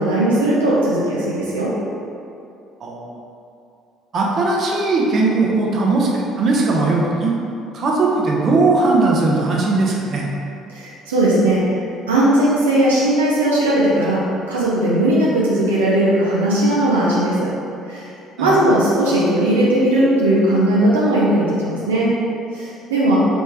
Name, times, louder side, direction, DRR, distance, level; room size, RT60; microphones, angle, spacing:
voice 1, 0.0-1.7 10.7-14.2 14.5-17.5 17.9-18.1 18.4-22.1 22.5-23.2, right 1 dB, 90° right, -7 dB, 0.5 m, -17 dB
voice 2, 2.8-3.2 4.1-7.3 7.7-10.3 18.4-18.6, right 3 dB, 50° right, -2 dB, 0.8 m, -18 dB
4.0 x 3.2 x 3.6 m, 2.6 s
hypercardioid pair, 55°, 0 cm